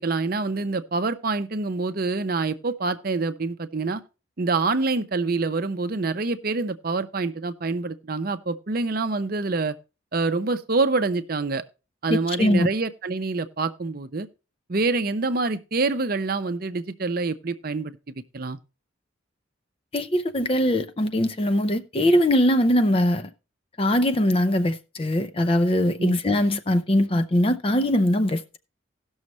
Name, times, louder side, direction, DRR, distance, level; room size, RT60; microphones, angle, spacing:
voice 1, 0.0-4.0 4.4-9.7 10.1-11.6 12.0-14.3 14.7-18.6 26.0-26.2, right 3 dB, 45° right, 0.6 m, -26 dB
voice 2, 12.1-12.7 19.9-23.3 23.8-28.4, left 1 dB, 30° left, 0.6 m, -21 dB
17.5 x 6.3 x 3.0 m
head